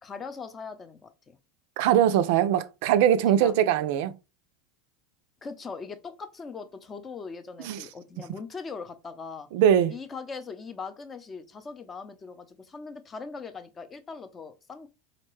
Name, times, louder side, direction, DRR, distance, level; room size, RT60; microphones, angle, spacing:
voice 1, 0.0-1.4 3.2-3.5 5.4-9.5 9.9-14.9, left 5 dB, 25° left, 0.5 m, -40 dB
voice 2, 1.8-4.1 7.6-7.8 9.5-9.9, right 10 dB, 70° right, 0.3 m, -21 dB
3.9 x 2.1 x 3.1 m
hypercardioid pair, 100°, 0 cm